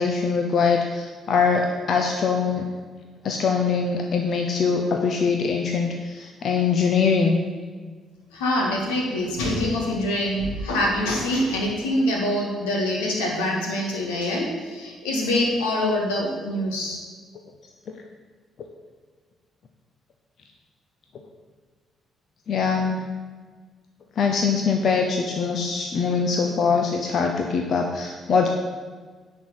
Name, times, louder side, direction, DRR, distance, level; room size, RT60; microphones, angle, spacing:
voice 1, 0.0-2.7 3.2-7.4 17.9-18.0 22.5-23.0 24.2-28.5, left 5 dB, 60° left, 3 dB, 0.8 m, -22 dB
voice 2, 8.3-17.0, left 1 dB, 85° left, -1 dB, 1.8 m, -25 dB
10.0 x 4.6 x 7.4 m, 1.5 s
hypercardioid pair, 50°, 0 cm